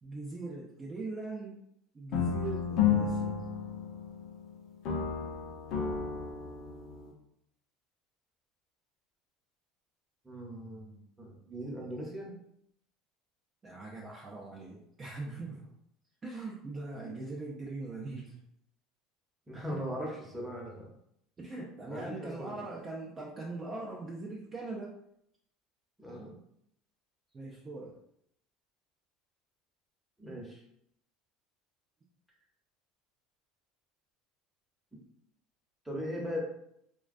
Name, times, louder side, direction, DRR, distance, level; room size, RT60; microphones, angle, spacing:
voice 1, 0.0-1.6 1.9-3.4 13.6-15.7 16.2-18.4 21.4-25.0 27.3-28.0, right 3 dB, 30° right, -3 dB, 0.4 m, -41 dB
sound 1, 2.1-4.5 4.8-7.1, left 7 dB, 65° left, 0.5 m, -32 dB
voice 2, 10.2-12.3 17.0-17.1 19.5-20.9 21.9-22.6 26.0-26.3 30.2-30.6 35.8-36.4, equal, 5° right, -3 dB, 0.8 m, -39 dB
2.3 x 2.2 x 2.5 m, 0.74 s
supercardioid pair, 95°, 0 cm